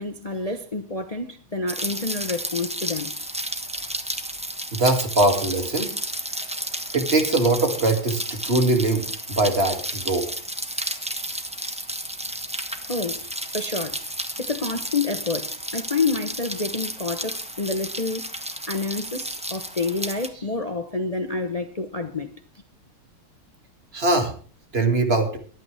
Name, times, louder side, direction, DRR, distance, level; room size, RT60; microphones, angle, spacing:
voice 1, 0.0-3.3 12.9-14.0 14.4-18.3 18.7-22.3, left 3 dB, 60° left, 0.4 m, -28 dB
Rain, 1.7-20.3, right 1 dB, 10° right, 0.4 m, -32 dB
voice 2, 4.7-5.9 6.9-10.3 23.9-24.3 24.7-25.4, right 2 dB, 30° right, 2.5 m, -22 dB
24.0 x 9.0 x 3.4 m
omnidirectional pair, 2.3 m